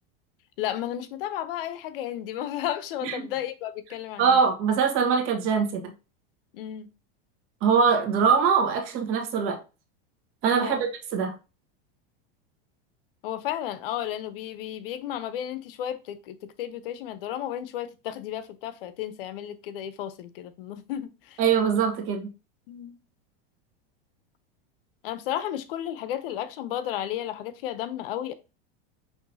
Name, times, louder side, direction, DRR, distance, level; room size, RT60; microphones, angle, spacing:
voice 1, 0.6-4.4 6.5-6.9 10.6-10.9 13.2-21.4 22.7-23.0 25.0-28.3, left 11 dB, 75° left, 0.7 m, -33 dB
voice 2, 4.2-5.9 7.6-9.6 10.4-11.3 21.4-22.3, right 6 dB, 45° right, 1.4 m, -23 dB
5.9 x 3.1 x 2.7 m
supercardioid pair, 135°, 29 cm